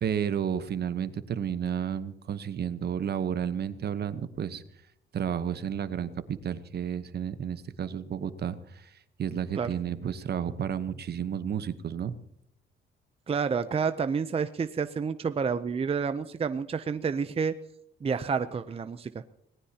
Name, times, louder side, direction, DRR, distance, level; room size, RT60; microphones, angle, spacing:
voice 1, 0.0-4.6 5.1-8.9 9.2-12.1, right 8 dB, 55° right, 12 dB, 1.1 m, -32 dB
voice 2, 13.3-17.5 18.0-19.2, right 6 dB, 30° right, 11 dB, 0.6 m, -29 dB
26.0 x 19.0 x 2.9 m, 0.75 s
cardioid pair, 90°, 20 cm